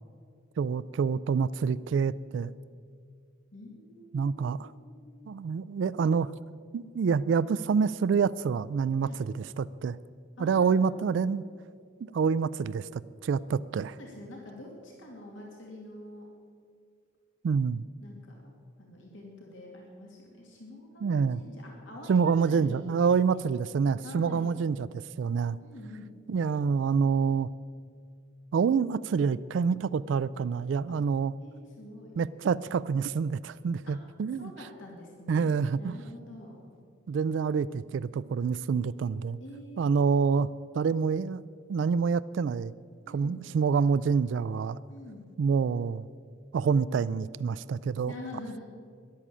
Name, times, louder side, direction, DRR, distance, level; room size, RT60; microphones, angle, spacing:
voice 1, 0.6-2.5 4.1-4.7 5.3-6.3 6.7-10.0 10.4-11.4 12.1-14.0 17.4-17.8 21.0-21.4 22.1-25.6 26.3-27.5 28.5-31.3 32.2-34.5 35.3-35.9 37.1-39.4 39.8-40.5 40.7-41.4 41.7-42.7 43.1-44.8 45.4-46.1 46.5-48.1, right 5 dB, 70° right, 18 dB, 0.3 m, -27 dB
voice 2, 3.5-5.3 9.0-9.2 10.4-11.2 13.9-16.3 18.0-18.5 18.8-23.4 24.0-24.5 25.6-26.1 31.4-32.1 33.9-34.0 34.4-36.6 39.4-40.2 43.0-43.4 44.9-45.3 48.1-48.6, left 1 dB, 80° left, -1 dB, 2.6 m, -46 dB
13.5 x 11.0 x 7.4 m, 2.2 s
head